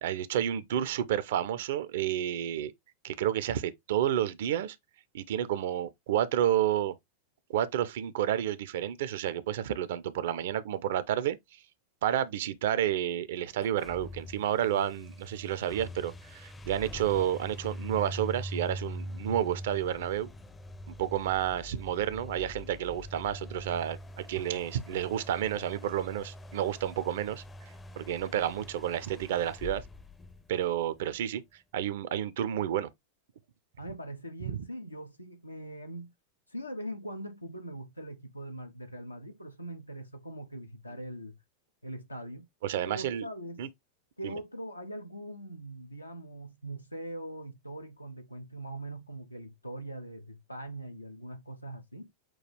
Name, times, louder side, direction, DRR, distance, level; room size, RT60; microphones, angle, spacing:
voice 1, 0.0-2.7 3.0-4.8 5.1-7.0 7.5-11.4 12.0-20.3 20.9-27.4 28.0-29.8 30.5-31.4 31.7-32.9 42.6-43.3 43.6-43.7 44.2-44.4, right 11 dB, 55° right, 0.4 m, -30 dB
sound 1, 13.5-31.0, equal, 15° left, 0.5 m, -43 dB
voice 2, 33.8-36.1 36.5-41.4 41.8-42.5 42.9-43.6 44.2-52.1, right 1 dB, 85° left, 0.5 m, -42 dB
6.0 x 2.3 x 3.1 m
figure-of-eight pair, 90°, 0 cm